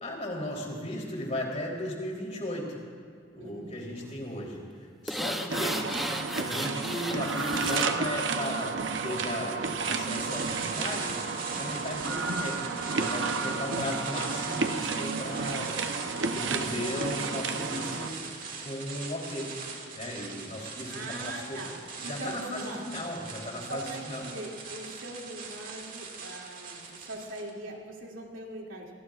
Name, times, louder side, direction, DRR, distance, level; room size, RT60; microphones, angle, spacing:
voice 1, 0.0-2.8 3.3-5.8 6.3-9.6 9.9-11.2 11.5-12.6 12.9-15.8 16.3-18.2 18.6-19.5 19.9-21.6 22.0-24.2, left 1 dB, 35° left, -1 dB, 3.4 m, -36 dB
voice 2, 3.4-4.0 5.2-5.9 20.9-23.0 23.7-28.9, right 1 dB, 85° right, -1 dB, 2.6 m, -41 dB
sound 1, 5.1-7.9 8.3-8.4, equal, ahead, 0.7 m, -34 dB
sound 2, 5.5-18.1, right 4 dB, 65° right, 0.8 m, -32 dB
sound 3, 9.8-27.5, right 5 dB, 45° right, 2.1 m, -40 dB
27.5 x 19.5 x 2.5 m, 2.2 s
head